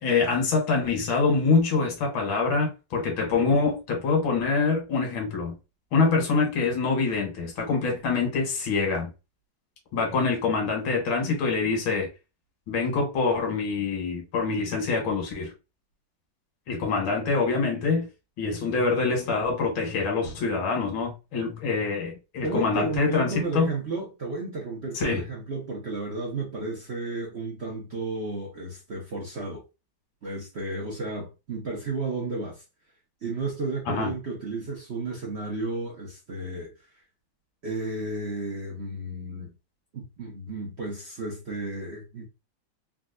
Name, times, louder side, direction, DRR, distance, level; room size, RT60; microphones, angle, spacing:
voice 1, 0.0-5.6 5.9-9.1 9.9-12.1 12.7-15.5 16.7-18.1 18.4-23.7 24.9-25.2 33.9-34.1, left 4 dB, 90° left, 1.9 m, -25 dB
voice 2, 22.4-29.6 30.2-32.6 33.2-36.7 37.6-39.5 39.9-42.3, right 3 dB, 55° right, 0.7 m, -33 dB
3.8 x 2.3 x 2.5 m
omnidirectional pair, 2.1 m